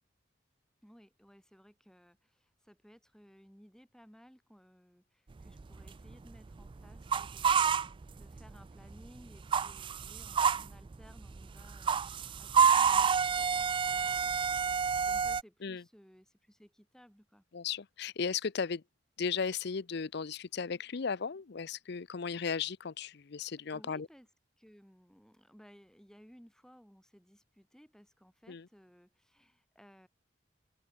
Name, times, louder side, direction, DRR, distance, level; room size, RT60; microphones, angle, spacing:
voice 1, 0.8-14.4 15.1-17.4 23.4-24.3 24.6-30.1, equal, 5° left, 7.9 m, -59 dB
sound 1, 5.4-8.6 8.9-15.4, right 6 dB, 25° right, 0.3 m, -29 dB
voice 2, 17.5-18.8 19.2-24.1 28.5-28.7, left 6 dB, 60° left, 0.6 m, -36 dB
open air
head